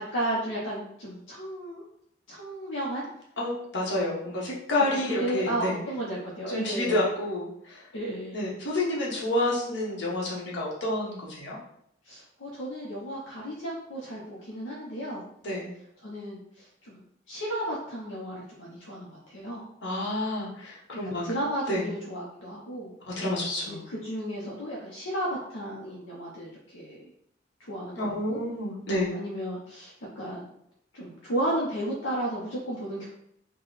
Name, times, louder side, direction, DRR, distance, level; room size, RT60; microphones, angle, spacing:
voice 1, 0.1-1.8 2.3-3.1 5.1-7.0 7.9-8.4 12.0-15.2 16.0-17.0 17.3-19.7 21.0-23.2 23.7-27.1 27.6-28.4 29.1-30.5 30.9-33.1, right 1 dB, 80° left, -5 dB, 0.7 m, -34 dB
voice 2, 3.4-5.8 6.5-7.8 8.3-11.6 15.4-15.7 19.8-21.2 21.7-21.8 23.2-23.8 28.0-29.1, left 1 dB, 65° left, -5 dB, 1.2 m, -29 dB
3.8 x 2.2 x 4.0 m, 0.73 s
head